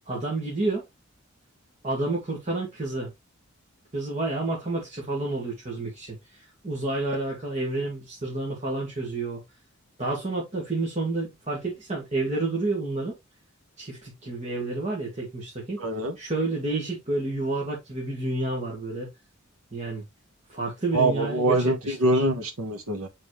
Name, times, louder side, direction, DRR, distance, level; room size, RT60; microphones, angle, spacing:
voice 1, 0.1-0.9 1.8-3.1 3.9-9.4 10.0-13.2 13.8-15.8 16.2-19.1 19.7-20.0 20.5-22.2, right 2 dB, 35° right, 2.0 m, -30 dB
voice 2, 15.8-16.2 20.9-23.1, right 2 dB, 80° right, 1.3 m, -24 dB
7.3 x 4.2 x 3.3 m
head